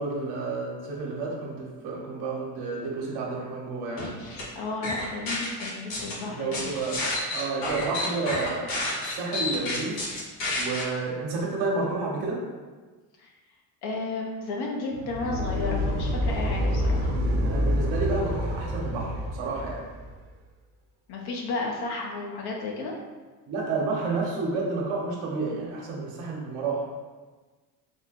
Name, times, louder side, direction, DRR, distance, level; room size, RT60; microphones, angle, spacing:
voice 1, 0.0-4.2 6.2-7.0 7.3-10.1 10.6-12.4 17.4-19.8 23.5-26.9, right 3 dB, 65° right, -2 dB, 1.2 m, -30 dB
sound 1, 4.0-4.4 4.8-6.1 6.5-10.8, left 2 dB, 80° left, 1.4 m, -30 dB
voice 2, 4.5-6.6 13.2-13.3 13.8-17.2 21.1-23.0, left 3 dB, 55° left, -1 dB, 1.0 m, -33 dB
sound 2, 14.9-20.1, equal, 45° right, 0.8 m, -27 dB
3.6 x 2.2 x 4.1 m, 1.3 s
supercardioid pair, 85°, 46 cm